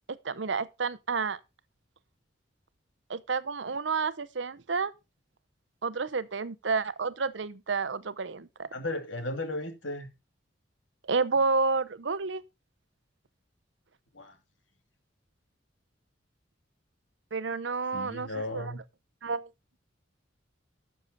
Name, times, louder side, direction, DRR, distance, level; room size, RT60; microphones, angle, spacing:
voice 1, 0.1-1.4 3.1-4.9 5.8-8.7 11.1-12.4 17.3-18.8 19.2-19.5, right 4 dB, 70° right, 0.8 m, -30 dB
voice 2, 8.7-10.1 14.1-14.4 17.9-18.8, left 1 dB, 80° left, 2.6 m, -35 dB
13.0 x 6.7 x 4.0 m
head